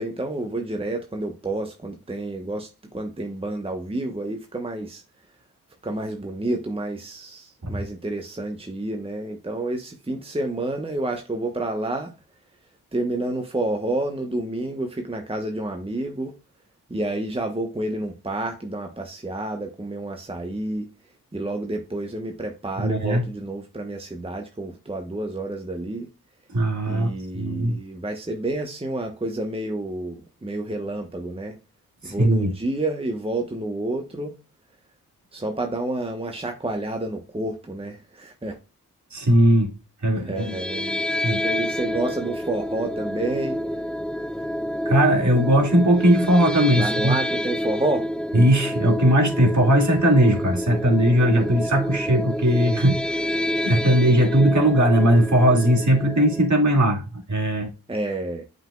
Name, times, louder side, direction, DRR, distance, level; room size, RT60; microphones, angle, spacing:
voice 1, 0.0-5.0 5.8-12.1 12.9-16.3 16.9-20.9 21.3-26.1 26.9-31.6 32.0-34.3 35.3-38.6 40.2-41.0 41.4-43.6 46.7-48.1 57.9-58.4, right 2 dB, 15° right, 1.1 m, -29 dB
voice 2, 22.8-23.3 26.5-27.8 32.0-32.5 39.1-39.7 40.0-40.6 41.2-41.4 44.9-47.2 48.3-53.4 53.6-57.7, right 1 dB, 45° right, 2.3 m, -19 dB
sound 1, 40.4-56.5, equal, ahead, 0.4 m, -28 dB
7.4 x 5.3 x 2.3 m
supercardioid pair, 45°, 40 cm